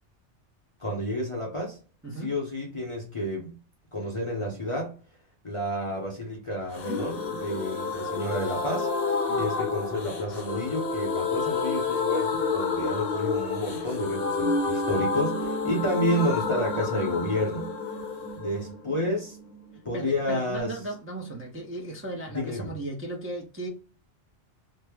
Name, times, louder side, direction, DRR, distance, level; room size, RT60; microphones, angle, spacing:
voice 1, 0.8-1.8 2.1-3.6 3.9-5.0 5.4-17.7 18.3-19.4 19.8-20.8 22.3-22.7, left 1 dB, 35° left, 0.6 m, -30 dB
sound 1, 6.7-20.4 20.6-20.7 21.0-21.1, left 4 dB, 60° left, 0.9 m, -29 dB
voice 2, 19.9-23.7, right 2 dB, 15° right, 0.4 m, -36 dB
3.0 x 2.0 x 3.4 m
omnidirectional pair, 1.2 m